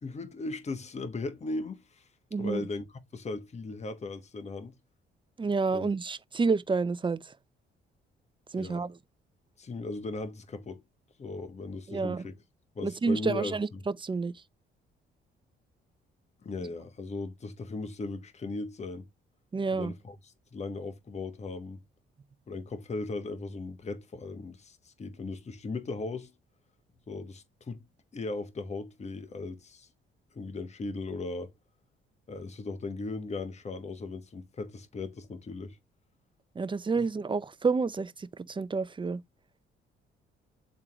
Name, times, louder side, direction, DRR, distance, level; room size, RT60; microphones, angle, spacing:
voice 1, 0.0-2.1 2.4-2.8 3.1-4.7 5.7-5.9 8.6-8.9 9.6-10.8 11.2-12.3 12.7-13.6 16.4-19.1 19.7-20.2 20.5-21.8 22.5-26.3 27.1-27.8 28.1-29.9 30.3-31.5 32.3-35.8 37.0-37.1, left 3 dB, 35° left, 1.2 m, -37 dB
voice 2, 2.3-2.7 5.4-7.4 8.5-9.0 11.9-12.2 12.8-14.4 19.5-19.9 36.5-39.2, right 4 dB, 25° right, 0.6 m, -29 dB
9.1 x 3.7 x 2.9 m
cardioid pair, 90°, 20 cm